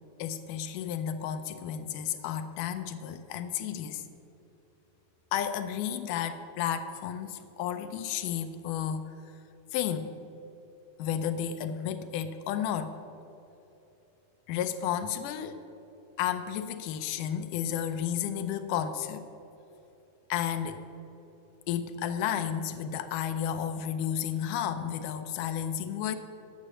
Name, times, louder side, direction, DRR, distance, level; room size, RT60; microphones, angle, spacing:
voice 1, 0.2-4.0 5.3-9.1 9.7-10.1 11.0-13.0 14.5-15.6 16.2-19.3 20.3-20.9 21.7-26.2, left 9 dB, 80° left, 10 dB, 1.9 m, -32 dB
10.0 x 7.2 x 7.6 m, 2.9 s
omnidirectional pair, 4.2 m